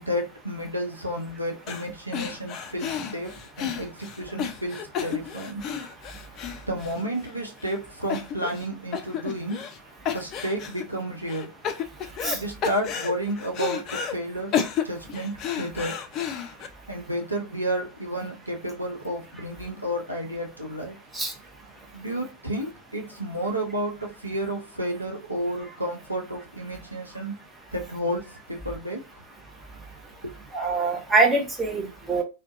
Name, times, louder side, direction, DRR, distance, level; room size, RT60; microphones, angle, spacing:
voice 1, 0.0-5.6 6.7-9.6 10.1-11.5 12.3-16.0 16.9-21.0 21.9-27.3 27.7-29.0 30.2-30.3, right 1 dB, 85° right, 0.5 m, -31 dB
sound 1, 1.7-1.9 2.1-7.3 7.6-7.8 8.1-8.7 8.9-9.8 10.1-10.8 11.3-12.4 12.6-14.1 14.5-16.7, left 8 dB, 35° left, 0.4 m, -31 dB
voice 2, 30.5-32.2, right 3 dB, 10° right, 0.7 m, -23 dB
2.2 x 2.1 x 2.5 m
figure-of-eight pair, 90°, 0 cm